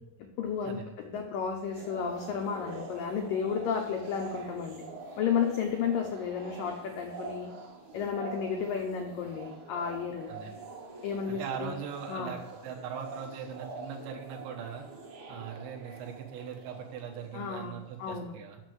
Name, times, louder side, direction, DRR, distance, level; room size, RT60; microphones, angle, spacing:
voice 1, 0.4-4.8 5.2-7.5 7.9-10.3 11.0-11.7 12.1-12.4 17.3-18.3, left 7 dB, 85° left, 2 dB, 1.9 m, -32 dB
sound 1, 1.8-17.9, right 3 dB, 55° right, 2.2 m, -45 dB
voice 2, 11.3-14.9 15.3-18.6, right 7 dB, 75° right, 2 dB, 3.3 m, -40 dB
8.1 x 6.4 x 7.9 m, 0.96 s
omnidirectional pair, 5.2 m